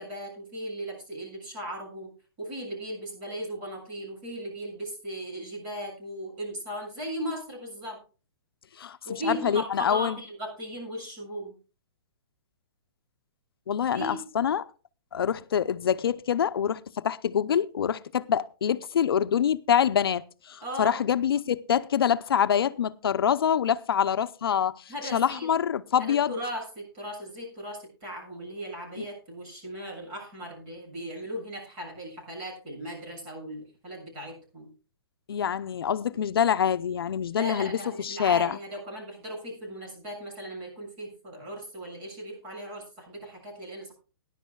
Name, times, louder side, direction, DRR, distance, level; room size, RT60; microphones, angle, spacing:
voice 1, 0.0-2.1 2.4-8.0 9.1-11.5 13.9-14.2 20.6-21.0 24.9-25.5 26.0-34.7 37.3-43.9, right 1 dB, 30° right, 7.0 m, -37 dB
voice 2, 8.8-10.2 13.7-14.7 15.1-26.3 29.0-29.1 35.3-38.6, left 8 dB, 75° left, 0.6 m, -26 dB
19.5 x 11.0 x 2.3 m
hypercardioid pair, 170°, 13 cm